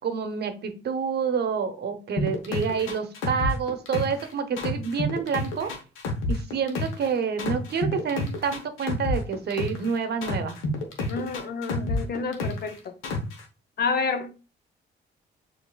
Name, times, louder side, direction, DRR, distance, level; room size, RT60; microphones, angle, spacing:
voice 1, 0.0-5.7 6.3-10.6, right 6 dB, 55° right, 0.8 m, -28 dB
sound 1, 2.2-4.3 4.6-7.1 7.4-9.9 10.2-12.7 13.0-13.4, left 2 dB, 85° left, 1.0 m, -28 dB
voice 2, 11.1-13.0 13.8-14.3, left 4 dB, 55° left, 0.7 m, -29 dB
6.8 x 2.7 x 2.4 m
cardioid pair, 90°, 20 cm